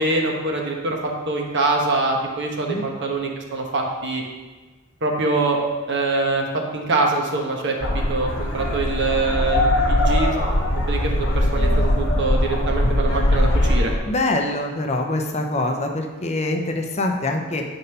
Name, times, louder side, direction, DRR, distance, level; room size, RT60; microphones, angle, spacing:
voice 1, 0.0-4.2 5.0-5.6 5.9-6.5 6.7-10.4 10.9-13.9, right 3 dB, 55° right, 0 dB, 1.2 m, -24 dB
sound 1, 7.8-14.0, left 1 dB, 65° left, 1.3 m, -20 dB
voice 2, 14.1-17.6, left 2 dB, 30° left, 3 dB, 0.7 m, -24 dB
7.9 x 4.1 x 5.5 m, 1.3 s
head